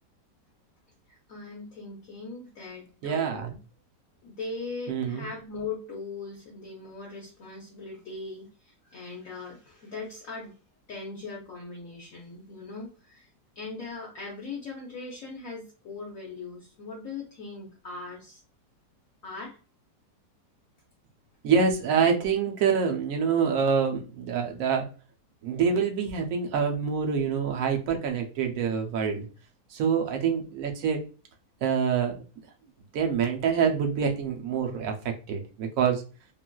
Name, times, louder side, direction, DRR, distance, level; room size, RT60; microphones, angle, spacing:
voice 1, 1.1-3.6 4.2-10.6 10.9-13.3 13.6-18.4 19.2-19.6, left 3 dB, 60° left, -3 dB, 1.0 m, -40 dB
voice 2, 3.0-3.5 4.9-5.3 21.4-24.9 25.4-29.3 29.7-31.1 31.6-32.2 32.9-34.9 35.3-36.0, right 6 dB, 65° right, 3 dB, 0.9 m, -26 dB
3.8 x 2.4 x 2.2 m, 0.35 s
omnidirectional pair, 1.9 m